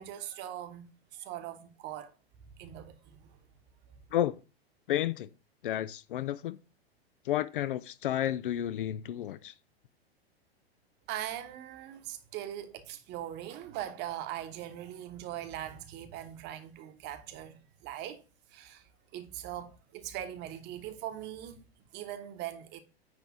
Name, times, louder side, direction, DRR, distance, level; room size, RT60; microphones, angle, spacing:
voice 1, 0.0-2.1 2.6-3.4 3.9-4.0 11.1-18.2 18.5-21.6 21.9-22.8, right 11 dB, 35° right, 1.1 m, -41 dB
voice 2, 4.1-4.4 4.9-5.3 5.6-6.6 7.2-9.5, left 12 dB, 55° left, 0.5 m, -31 dB
9.7 x 3.3 x 6.1 m
figure-of-eight pair, 100°, 32 cm